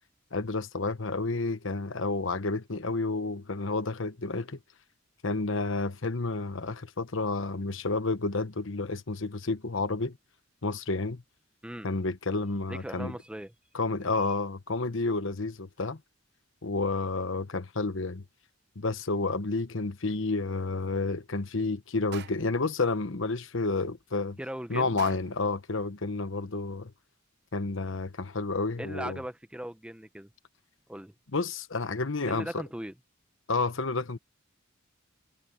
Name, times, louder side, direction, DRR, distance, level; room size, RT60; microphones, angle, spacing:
voice 1, 0.3-4.6 5.2-10.2 10.6-11.2 11.8-13.1 13.7-16.0 16.6-18.2 18.7-24.4 24.7-26.9 27.5-29.2 31.3-32.5 33.5-34.2, left 3 dB, 65° left, 1.2 m, -30 dB
voice 2, 12.7-13.5 24.4-25.0 28.8-30.3 30.9-31.1 32.3-32.9, right 1 dB, 5° right, 0.9 m, -38 dB
sound 1, 22.1-22.7 25.0-25.5, right 7 dB, 55° right, 0.9 m, -45 dB
head